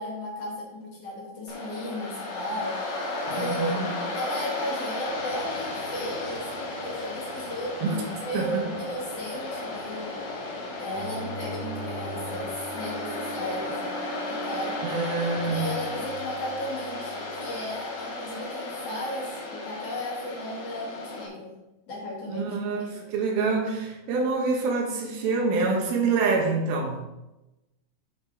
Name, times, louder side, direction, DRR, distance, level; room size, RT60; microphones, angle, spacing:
voice 1, 0.0-2.8 3.3-3.8 4.1-10.2 10.8-14.0 14.3-14.8 15.4-21.5 21.9-22.5, left 1 dB, 45° left, -4 dB, 2.9 m, -35 dB
Waves surf, 1.5-21.3, left 2 dB, 60° left, 2.7 m, -34 dB
voice 2, 3.4-4.0 7.8-8.0 8.3-8.7 14.8-15.8 22.3-27.1, right 4 dB, 70° right, 1 dB, 3.0 m, -26 dB
sound 1, 5.1-12.6, left 2 dB, 90° left, 4.2 m, -44 dB
Bowed string instrument, 10.9-18.2, right 4 dB, 25° left, 1.9 m, -41 dB
8.8 x 5.1 x 4.8 m, 0.98 s
omnidirectional pair, 4.7 m